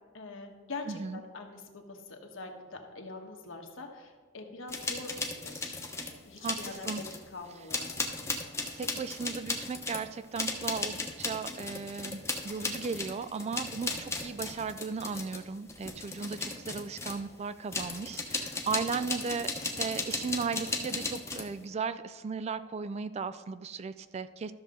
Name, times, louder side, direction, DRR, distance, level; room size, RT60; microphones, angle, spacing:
voice 1, 0.1-5.8 6.2-8.1 19.6-19.9, left 3 dB, 75° left, 3 dB, 1.3 m, -44 dB
voice 2, 0.9-1.2 6.4-7.1 8.8-24.5, right 5 dB, 35° right, 12 dB, 0.3 m, -36 dB
sound 1, 4.7-6.1 6.4-7.3 7.7-17.2 17.7-21.5, left 3 dB, 15° left, 0.9 m, -36 dB
13.0 x 6.5 x 3.8 m, 1.5 s
head